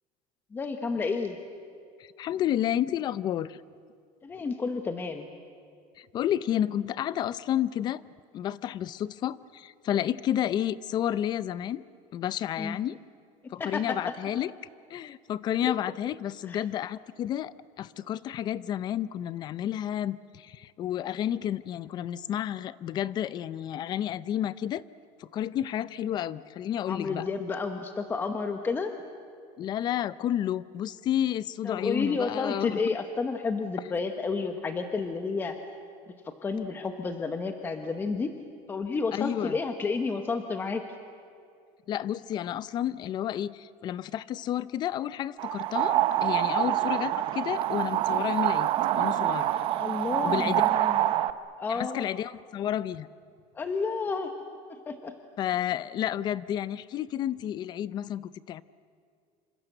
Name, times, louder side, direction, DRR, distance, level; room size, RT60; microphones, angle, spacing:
voice 1, 0.5-1.4 4.2-5.3 12.6-12.8 13.4-14.1 15.6-15.7 16.5-16.6 26.9-28.9 31.6-35.6 36.2-38.3 38.7-40.8 46.5-46.7 49.8-51.1 51.6-52.0 53.5-54.3 54.7-55.1, left 4 dB, 15° left, 7 dB, 1.0 m, -31 dB
voice 2, 2.0-3.6 6.0-8.0 8.3-11.8 12.1-13.0 13.5-14.5 14.9-24.8 25.2-27.3 29.6-32.8 39.1-39.6 41.9-48.7 49.0-49.5 50.2-50.6 51.7-53.1 55.4-58.6, left 11 dB, 35° left, 18 dB, 0.6 m, -31 dB
sound 1, 45.4-51.3, right 13 dB, 45° right, 0.8 m, -26 dB
27.5 x 25.5 x 7.9 m, 2.3 s
cardioid pair, 180°, 13 cm